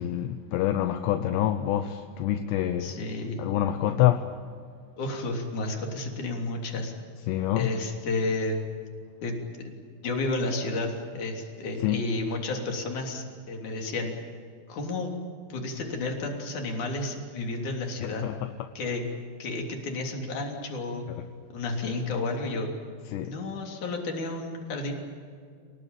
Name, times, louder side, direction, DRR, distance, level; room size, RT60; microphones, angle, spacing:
voice 1, 0.0-3.0 3.4-4.3 7.3-7.7 11.8-12.0 18.0-18.4 21.1-21.2 23.1-23.3, left 12 dB, 75° left, 2.6 m, -26 dB
voice 2, 2.8-3.4 5.0-6.9 7.6-8.6 9.2-9.4 9.6-9.8 10.0-14.1 14.7-15.1 15.5-18.2 18.7-19.0 19.4-21.1 21.5-22.7 23.2-24.9, left 2 dB, 40° left, 4.2 m, -31 dB
28.5 x 19.0 x 9.0 m
omnidirectional pair, 5.7 m